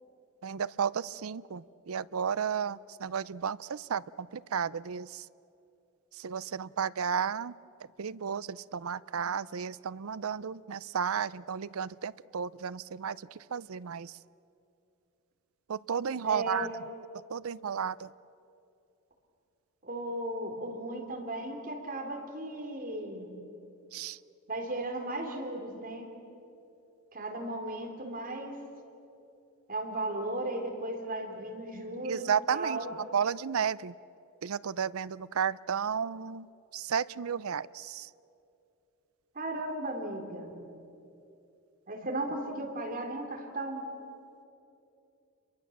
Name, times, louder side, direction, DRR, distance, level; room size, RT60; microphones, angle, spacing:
voice 1, 0.4-5.3 6.2-7.5 8.0-14.2 15.7-16.7 17.3-18.1 23.9-24.2 32.0-33.9 34.4-36.5 36.7-38.1, right 7 dB, 70° right, 18 dB, 0.5 m, -33 dB
voice 2, 16.2-16.7 19.8-23.3 24.5-26.1 27.1-28.6 29.7-32.9 39.3-40.5 41.9-43.8, right 1 dB, 40° right, 2 dB, 3.7 m, -36 dB
29.5 x 23.0 x 7.3 m, 2.7 s
head